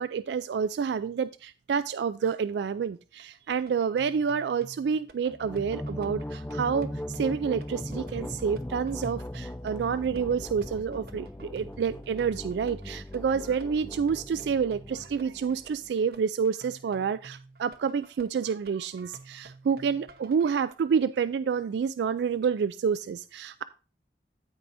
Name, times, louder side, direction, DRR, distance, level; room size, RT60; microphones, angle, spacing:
voice 1, 0.0-23.6, right 6 dB, 80° right, 14 dB, 0.3 m, -28 dB
sound 1, 3.2-20.7, right 3 dB, 55° right, 0.8 m, -52 dB
sound 2, 5.2-15.9, left 1 dB, 10° left, 0.3 m, -39 dB
14.5 x 4.8 x 2.6 m, 0.33 s
head